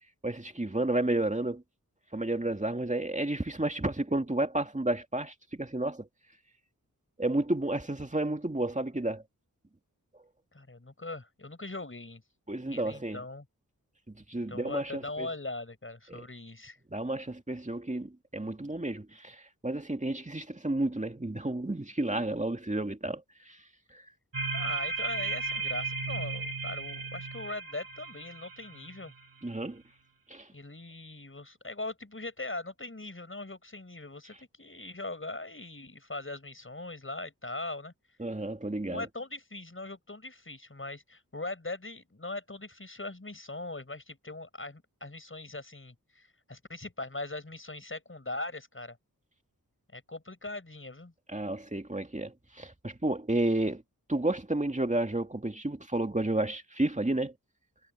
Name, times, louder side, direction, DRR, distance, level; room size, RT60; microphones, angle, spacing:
voice 1, 0.2-1.6 2.1-6.1 7.2-9.2 12.5-13.2 14.1-15.3 16.1-16.3 16.9-23.6 23.9-24.0 29.4-29.8 30.3-30.5 38.2-39.1 51.3-53.8 54.1-57.3, right 2 dB, 20° right, 2.3 m, -31 dB
voice 2, 10.5-12.2 12.6-13.4 14.5-16.8 24.5-29.1 30.5-37.9 38.9-49.0 49.9-51.1, left 2 dB, 40° left, 5.9 m, -40 dB
sound 1, 24.3-29.2, right 3 dB, 80° right, 3.0 m, -35 dB
wide cardioid pair, 60°, 34 cm